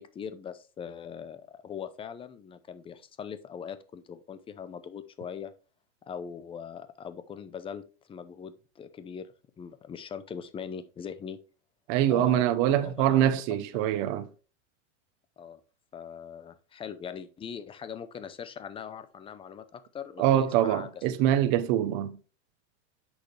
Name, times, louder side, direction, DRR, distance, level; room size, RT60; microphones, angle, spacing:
voice 1, 0.0-5.5 6.1-9.3 9.6-11.4 12.1-12.4 12.8-13.6 15.4-15.6 15.9-21.0, left 7 dB, 15° left, 0.6 m, -41 dB
voice 2, 11.9-14.3 20.2-22.2, right 11 dB, 45° right, 0.9 m, -24 dB
8.3 x 6.4 x 3.3 m
supercardioid pair, 145°, 37 cm